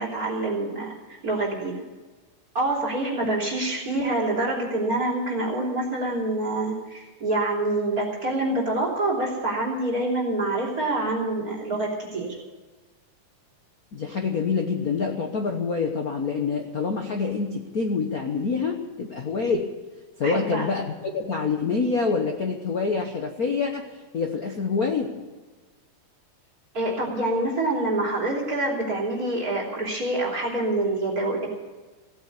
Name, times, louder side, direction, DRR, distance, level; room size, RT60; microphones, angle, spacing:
voice 1, 0.0-1.7 2.5-12.4 20.2-20.7 26.7-31.5, right 2 dB, 30° right, -3 dB, 3.4 m, -26 dB
voice 2, 13.9-19.7 20.2-25.1, left 5 dB, 80° left, 3 dB, 0.8 m, -26 dB
16.5 x 8.7 x 8.3 m, 1.3 s
omnidirectional pair, 3.4 m